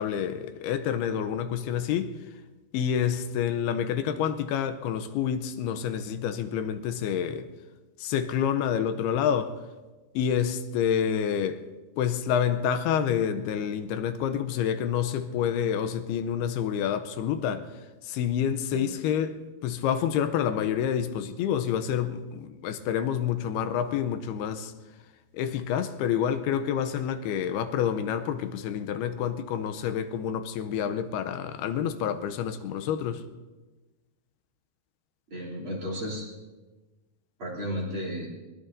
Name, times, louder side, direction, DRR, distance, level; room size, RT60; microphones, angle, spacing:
voice 1, 0.0-2.1 2.7-7.5 8.0-9.5 10.1-11.6 12.0-17.7 18.0-19.3 19.6-24.7 25.3-33.2, left 8 dB, 85° left, 2.7 m, -28 dB
voice 2, 35.3-36.2 37.4-38.3, equal, 35° right, 3.5 m, -33 dB
22.0 x 20.5 x 2.6 m
omnidirectional pair, 4.5 m